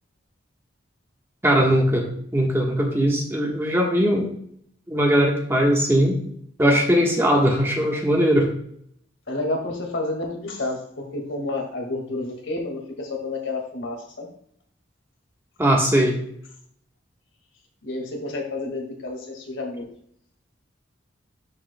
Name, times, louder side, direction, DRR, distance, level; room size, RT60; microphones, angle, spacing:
voice 1, 1.4-4.3 4.9-6.2 6.6-8.5 15.6-16.2, equal, 15° right, -1 dB, 1.3 m, -20 dB
voice 2, 9.3-14.3 17.8-19.8, left 2 dB, 80° left, 1 dB, 2.0 m, -30 dB
12.0 x 4.9 x 2.2 m, 0.65 s
head